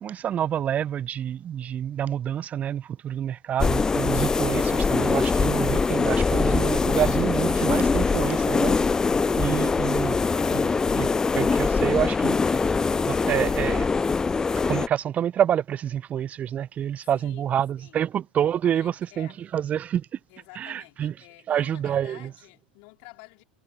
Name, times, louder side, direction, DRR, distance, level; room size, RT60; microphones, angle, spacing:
voice 1, 0.0-8.8 9.4-10.2 10.5-11.1 11.4-12.6 13.0-13.9 14.7-20.1 20.6-21.1 21.5-22.3, right 9 dB, 30° right, 0.7 m, -27 dB
sound 1, 3.6-14.9, left 4 dB, 15° left, 0.3 m, -23 dB
voice 2, 17.1-18.0 18.6-19.4 20.3-23.4, left 40 dB or more, 50° left, 3.1 m, -50 dB
figure-of-eight pair, 85°, 5 cm